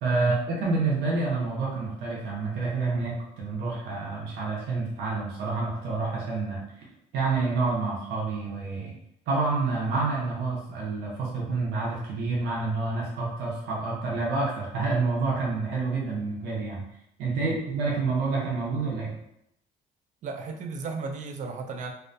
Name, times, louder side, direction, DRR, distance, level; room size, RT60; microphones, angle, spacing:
voice 1, 0.0-6.8 7.1-8.9 9.3-16.8 17.2-19.1, right 3 dB, 80° right, -4 dB, 0.7 m, -28 dB
voice 2, 20.2-21.9, right 4 dB, 45° right, 5 dB, 0.4 m, -35 dB
2.4 x 2.1 x 2.5 m, 0.78 s
cardioid pair, 110°, 17 cm